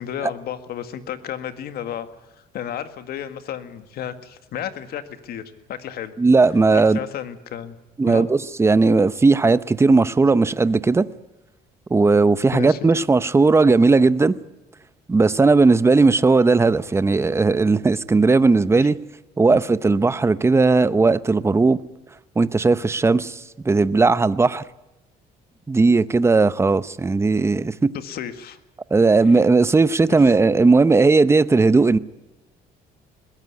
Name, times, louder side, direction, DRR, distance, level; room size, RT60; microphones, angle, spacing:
voice 1, 0.0-2.1 2.3-5.4 5.7-6.1 6.7-7.8 8.1-8.3 12.5-12.9 18.8-18.9 19.5-19.6 27.9-28.6 30.1-30.2, left 9 dB, 65° left, 10 dB, 1.9 m, -32 dB
voice 2, 6.2-7.0 8.0-11.1 11.9-14.4 15.1-19.0 19.4-21.8 22.4-24.6 25.7-27.9 28.9-32.0, right 3 dB, 15° right, 16 dB, 0.7 m, -17 dB
21.0 x 16.5 x 9.6 m, 1.0 s
cardioid pair, 110°, 17 cm